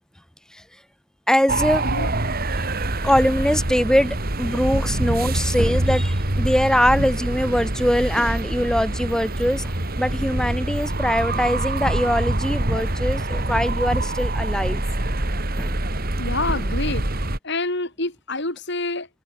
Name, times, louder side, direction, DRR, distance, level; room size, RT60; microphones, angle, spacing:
voice 1, 1.3-1.8 3.0-14.8 15.6-15.8 16.5-16.6, equal, 5° left, 3.8 m, -22 dB
sound 1, 1.5-17.4, right 1 dB, 45° right, 2.6 m, -25 dB
voice 2, 16.2-17.1 17.4-19.1, left 2 dB, 55° left, 6.5 m, -27 dB
head